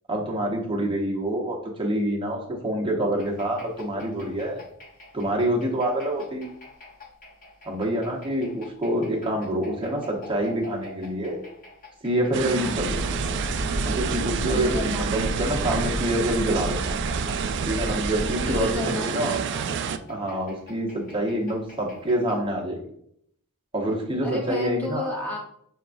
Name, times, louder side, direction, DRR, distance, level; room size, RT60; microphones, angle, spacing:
voice 1, 0.1-4.6 5.1-6.4 7.6-11.4 12.0-13.0 13.8-16.8 17.6-19.4 20.1-22.8 23.7-25.1, right 1 dB, 25° right, -2 dB, 1.0 m, -26 dB
sound 1, 3.2-22.5, equal, 40° left, 0.9 m, -46 dB
sound 2, 12.3-20.0, right 7 dB, 55° right, 0.3 m, -29 dB
voice 2, 12.5-12.8 14.5-15.6 18.4-19.9 24.2-25.4, equal, 10° left, -3 dB, 0.9 m, -33 dB
sound 3, 12.7-18.8, equal, 55° left, 0.6 m, -31 dB
6.8 x 2.3 x 2.5 m, 0.69 s
head